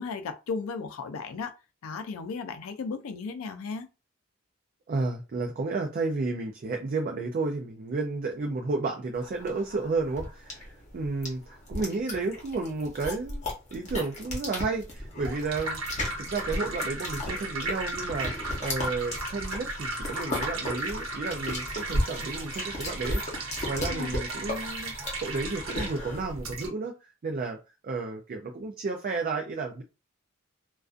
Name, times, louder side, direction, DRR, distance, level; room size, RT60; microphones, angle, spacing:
voice 1, 0.0-1.5 1.8-3.9 23.9-24.1, left 4 dB, 80° left, 0.4 m, -35 dB
voice 2, 4.9-13.4 13.7-15.8 16.2-23.2 23.6-24.9 25.2-27.6 27.8-29.8, right 3 dB, 45° right, 0.3 m, -32 dB
sound 1, 9.2-26.2, left 1 dB, 35° left, 0.9 m, -35 dB
sound 2, 15.0-26.7, right 2 dB, 70° right, 0.9 m, -35 dB
2.4 x 2.2 x 2.4 m
head